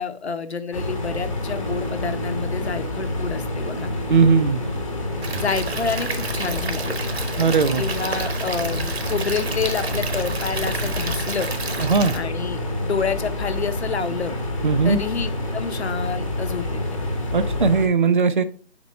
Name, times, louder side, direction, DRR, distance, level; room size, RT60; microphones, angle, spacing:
voice 1, 0.0-3.9 5.3-7.1 7.8-11.5 12.1-14.3 14.8-17.0, left 5 dB, 70° left, 10 dB, 0.8 m, -28 dB
sound 1, 0.7-17.9, left 1 dB, 30° left, 1.0 m, -28 dB
Piano, 1.5-8.4, right 3 dB, 15° right, 0.7 m, -41 dB
voice 2, 4.1-4.6 7.4-7.8 11.8-12.1 14.6-15.0 17.3-18.4, right 5 dB, 45° right, 13 dB, 0.4 m, -18 dB
Stream / Liquid, 5.2-12.2, right 3 dB, 65° right, 1.1 m, -31 dB
5.2 x 4.4 x 4.1 m, 0.42 s
figure-of-eight pair, 165°, 34 cm